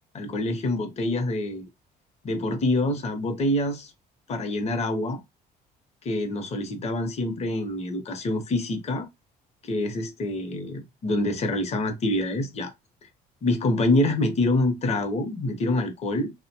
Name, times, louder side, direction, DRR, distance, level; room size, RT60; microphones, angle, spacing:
voice 1, 0.1-1.6 2.2-3.9 4.3-5.2 6.0-9.1 9.6-12.7 13.4-16.3, left 1 dB, 40° left, 0.8 m, -26 dB
2.8 x 2.1 x 2.8 m
cardioid pair, 110°, 17 cm